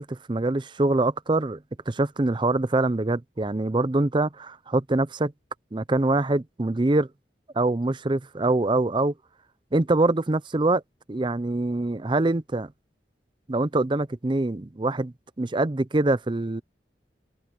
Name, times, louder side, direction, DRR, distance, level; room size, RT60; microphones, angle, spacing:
voice 1, 0.0-1.6 1.9-5.3 5.7-7.1 7.5-9.1 9.7-10.8 11.1-12.7 13.5-16.6, right 2 dB, 25° right, 0.6 m, -24 dB
head